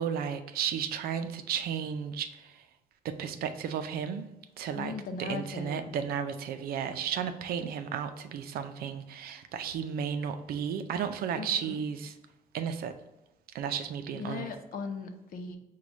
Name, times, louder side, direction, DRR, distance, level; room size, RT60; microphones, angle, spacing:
voice 1, 0.0-2.7 3.0-4.3 4.6-4.9 5.2-12.1 12.5-12.9 13.5-14.5, right 7 dB, 80° right, 0.5 m, -33 dB
voice 2, 4.7-5.9 11.4-11.7 14.1-15.6, left 4 dB, 65° left, 0.6 m, -38 dB
4.7 x 2.3 x 4.0 m
cardioid pair, 110°, 15 cm